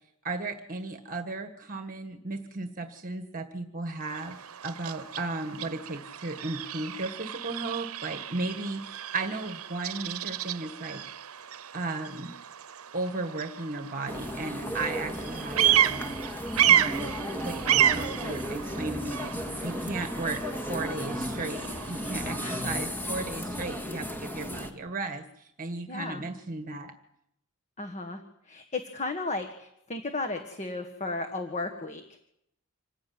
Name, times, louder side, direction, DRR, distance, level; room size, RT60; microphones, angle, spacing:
voice 1, 0.2-11.0 11.7-12.3 12.9-16.1 16.7-19.3 19.6-20.4 20.7-25.2 25.6-26.9, right 3 dB, 40° right, 7 dB, 1.6 m, -35 dB
Bird vocalization bird call bird song, 4.0-22.8, right 11 dB, 75° right, 0.9 m, -31 dB
sound 1, 14.1-24.7, equal, 10° left, 2.2 m, -35 dB
voice 2, 22.4-22.7 25.9-26.2 27.8-28.2 28.5-32.2, left 3 dB, 30° left, 6 dB, 1.7 m, -34 dB
26.0 x 16.0 x 9.6 m, 0.80 s
head